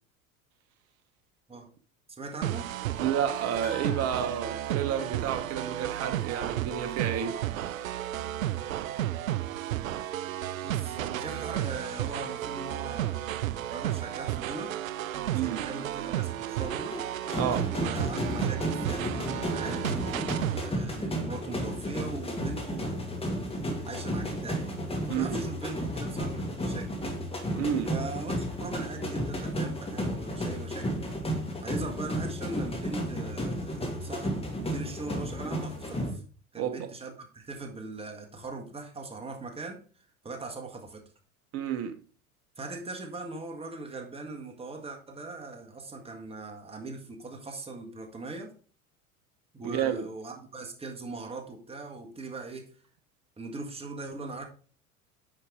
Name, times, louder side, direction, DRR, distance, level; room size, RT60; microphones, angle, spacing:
voice 1, 2.1-2.7 10.6-13.2 13.7-14.7 15.3-17.0 17.7-23.4 23.8-24.7 25.1-26.4 26.7-27.1 27.9-31.0 31.6-36.2 36.5-39.8 40.2-41.0 42.6-48.5 49.5-52.7 53.4-54.5, right 3 dB, 15° right, 1.7 m, -40 dB
sound 1, 2.4-20.7, right 12 dB, 70° right, 0.5 m, -33 dB
voice 2, 3.0-7.4 15.3-15.6 17.3-17.7 25.1-25.4 27.6-27.9 36.6-36.9 41.5-42.0 49.6-50.1, right 9 dB, 35° right, 1.0 m, -30 dB
sound 2, 3.6-6.0, left 6 dB, 75° left, 2.5 m, -50 dB
sound 3, 16.6-36.1, equal, 15° left, 2.3 m, -33 dB
9.7 x 5.8 x 3.7 m
figure-of-eight pair, 75°, 43 cm